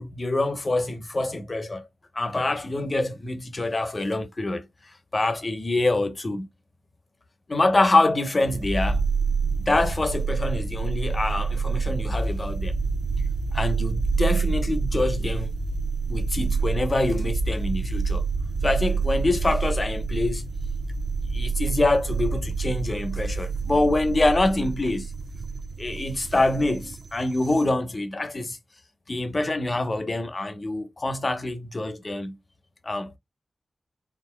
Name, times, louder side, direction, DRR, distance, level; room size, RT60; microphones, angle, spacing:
voice 1, 0.0-1.9 2.1-4.7 5.1-6.5 7.5-9.0 9.6-12.7 13.5-15.5 16.1-18.2 18.6-20.5 21.3-25.1 25.8-28.6 29.1-32.4 32.8-33.2, left 2 dB, 35° left, 1.0 m, -25 dB
sound 1, 8.4-27.6, right 4 dB, 80° right, 0.9 m, -27 dB
4.6 x 3.8 x 2.3 m
wide cardioid pair, 130°, 0 cm